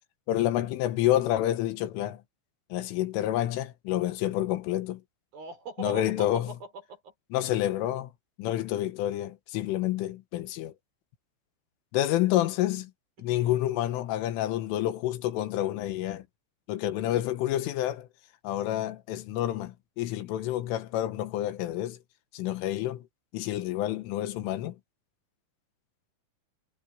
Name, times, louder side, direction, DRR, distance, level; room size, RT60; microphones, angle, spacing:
voice 1, 0.3-2.2 2.7-5.0 5.8-6.5 7.3-8.1 8.4-10.7 11.9-12.9 13.2-16.3 16.7-18.1 18.4-22.0 22.3-23.0 23.3-24.8, left 13 dB, 80° left, 3.8 m, -28 dB
voice 2, 5.3-7.1 13.2-13.6, right 4 dB, 45° right, 6.4 m, -41 dB
omnidirectional pair, 5.8 m